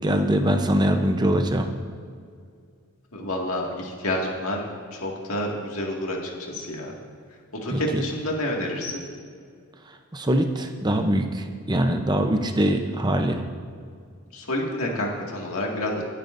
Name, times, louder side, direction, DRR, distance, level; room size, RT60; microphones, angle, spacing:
voice 1, 0.0-1.7 7.7-8.0 10.1-13.4, right 1 dB, 20° right, 5 dB, 0.7 m, -23 dB
voice 2, 3.1-6.9 7.5-9.0 14.3-16.0, left 1 dB, 70° left, -1 dB, 2.1 m, -29 dB
25.0 x 8.9 x 2.6 m, 2.2 s
head